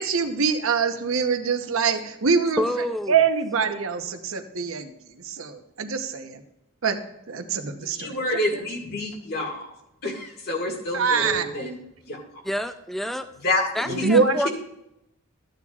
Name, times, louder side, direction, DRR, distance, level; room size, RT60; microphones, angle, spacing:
voice 1, 0.0-2.6 3.1-6.4 6.8-7.0 7.3-8.1 10.9-11.6 13.9-14.4, right 5 dB, 80° right, 6 dB, 1.0 m, -24 dB
voice 2, 2.6-3.2 12.4-13.3 13.7-14.5, equal, ahead, 9 dB, 0.3 m, -27 dB
voice 3, 7.9-9.7 10.0-11.8 12.0-12.2 13.4-14.1, left 1 dB, 50° left, 1 dB, 1.9 m, -28 dB
14.0 x 8.9 x 2.4 m, 0.84 s
head